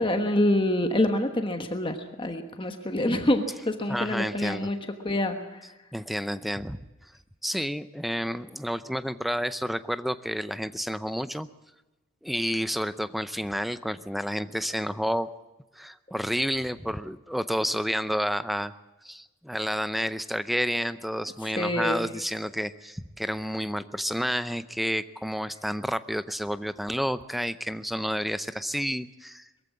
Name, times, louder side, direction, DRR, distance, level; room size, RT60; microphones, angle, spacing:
voice 1, 0.0-4.8 5.0-5.6 21.6-22.1, left 1 dB, 25° left, 6 dB, 1.2 m, -26 dB
voice 2, 3.9-4.7 5.9-6.8 7.4-11.5 12.2-15.3 15.8-18.7 19.0-29.5, equal, ahead, 13 dB, 0.6 m, -30 dB
22.0 x 14.5 x 8.4 m, 1.1 s
head